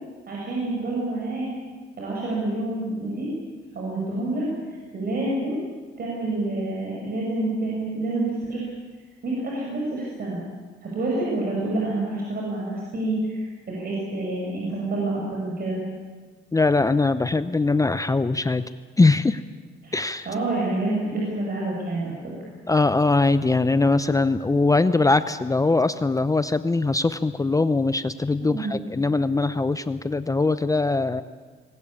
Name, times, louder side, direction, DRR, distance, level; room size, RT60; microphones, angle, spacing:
voice 1, 0.3-1.5 2.0-3.3 3.7-5.6 6.0-8.7 9.2-10.4 10.8-15.8 19.8-20.0 20.3-22.3 28.5-28.8, right 2 dB, 50° right, -4 dB, 6.8 m, -28 dB
voice 2, 16.5-18.6 19.0-19.4 19.9-20.3 22.7-31.2, left 3 dB, 15° left, 12 dB, 0.7 m, -21 dB
21.0 x 19.0 x 8.8 m, 1.4 s
cardioid pair, 90°, 20 cm